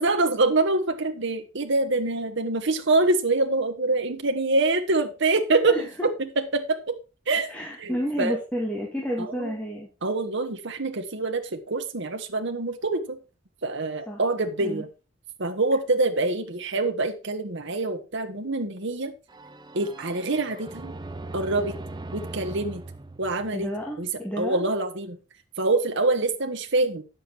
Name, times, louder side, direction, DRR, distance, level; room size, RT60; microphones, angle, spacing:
voice 1, 0.0-6.1 6.4-7.0 7.3-7.5 7.8-8.4 9.2-9.5 10.0-13.2 13.6-14.9 15.4-19.1 19.7-20.9 21.3-21.7 22.1-22.8 23.2-23.7 24.0-24.1 24.4-25.2 25.6-27.0, right 2 dB, 65° right, 5 dB, 1.4 m, -25 dB
voice 2, 5.7-6.1 7.5-9.9 14.1-14.2 14.6-14.8 23.5-24.6, equal, 5° left, -2 dB, 2.2 m, -31 dB
sound 1, 19.3-24.1, right 2 dB, 20° right, 0.7 m, -39 dB
9.9 x 7.6 x 4.6 m, 0.31 s
head